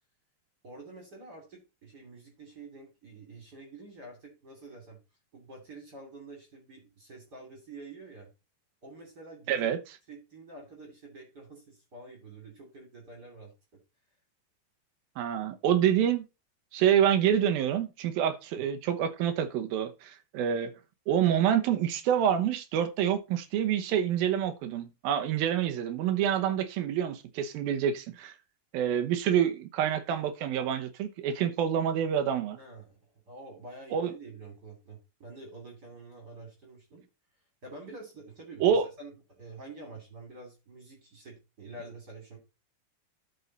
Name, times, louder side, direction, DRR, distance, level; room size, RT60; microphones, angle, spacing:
voice 1, 0.6-5.0 5.3-8.3 8.8-9.7 10.1-13.5 18.5-18.7 32.6-37.0 37.6-42.4, right 3 dB, 25° right, 2.8 m, -48 dB
voice 2, 9.5-9.8 15.2-16.2 16.7-20.7 21.1-28.3 28.7-32.6 33.9-34.1 38.6-38.9, right 9 dB, 70° right, 2.6 m, -27 dB
12.5 x 5.5 x 4.0 m
omnidirectional pair, 4.7 m